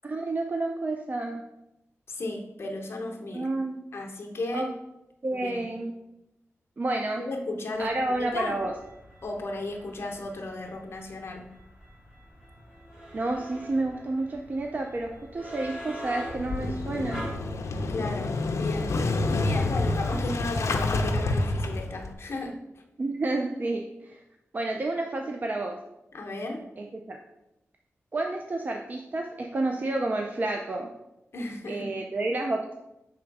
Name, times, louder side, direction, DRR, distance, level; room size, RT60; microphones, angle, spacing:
voice 1, 0.0-1.4 3.3-3.8 4.5-4.7 5.2-5.9 6.8-7.2 7.8-8.7 13.1-17.2 23.0-24.2 24.5-25.8 26.8-27.2 28.1-30.9 31.7-32.7, right 2 dB, 35° right, 2 dB, 0.4 m, -30 dB
voice 2, 2.1-3.5 3.9-4.7 5.4-5.7 7.2-7.9 8.2-8.6 9.2-11.5 17.9-19.0 19.4-22.6 26.1-26.6 31.3-32.0, left 2 dB, 55° left, 2 dB, 0.9 m, -34 dB
sound 1, 7.7-17.3, equal, 15° right, 1.5 m, -44 dB
Motorcycle / Engine starting, 16.3-22.1, left 2 dB, 75° left, 0.6 m, -28 dB
6.3 x 3.5 x 4.6 m, 0.93 s
wide cardioid pair, 160°, 5 cm